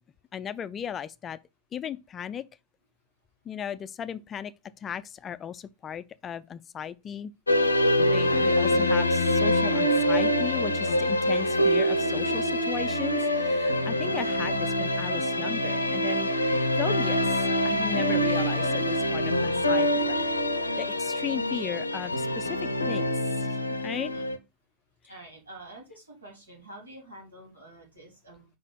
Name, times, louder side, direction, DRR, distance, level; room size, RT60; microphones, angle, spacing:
voice 1, 0.3-1.4 1.7-2.4 3.5-4.5 4.8-7.3 8.0-16.3 16.8-20.2 20.8-23.5 23.8-24.1, left 8 dB, 25° left, 0.4 m, -36 dB
sound 1, 7.5-24.4, left 1 dB, 80° left, 0.6 m, -25 dB
voice 2, 25.1-28.5, right 1 dB, 80° right, 3.2 m, -47 dB
5.0 x 4.1 x 5.2 m
figure-of-eight pair, 90°, 0 cm